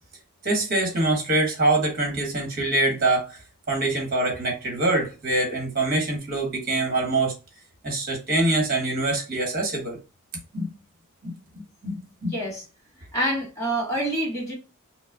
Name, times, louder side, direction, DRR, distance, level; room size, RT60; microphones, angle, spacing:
voice 1, 0.4-3.4 3.7-7.3 7.8-10.0 10.5-10.7 11.2-12.3, right 2 dB, 40° right, 1.4 m, -24 dB
voice 2, 12.3-12.6 13.1-14.5, right 1 dB, 15° left, 1.6 m, -26 dB
5.3 x 2.1 x 2.3 m
head